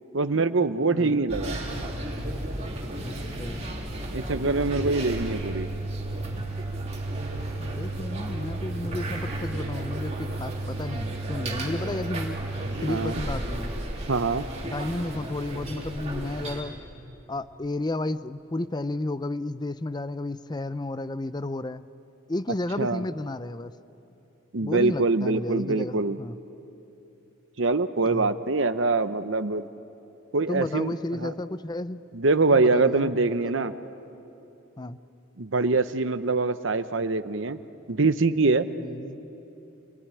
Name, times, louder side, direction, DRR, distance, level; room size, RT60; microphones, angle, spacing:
voice 1, 0.1-1.6 4.1-5.7 12.9-13.2 14.1-14.5 22.8-23.0 24.5-26.2 27.6-29.6 30.3-31.3 32.1-33.7 35.4-37.6 37.9-38.7, right 3 dB, 65° right, 11 dB, 0.9 m, -24 dB
sound 1, 1.3-16.6, right 1 dB, 30° right, 3.2 m, -33 dB
voice 2, 3.0-3.8 7.6-12.4 12.8-13.8 14.6-16.8 17.3-21.9 22.3-23.8 24.6-26.4 28.1-28.4 30.5-32.0 32.5-33.7 34.8-35.0 38.8-39.2, left 2 dB, 20° left, 14 dB, 0.5 m, -32 dB
28.5 x 19.5 x 9.8 m, 3.0 s
head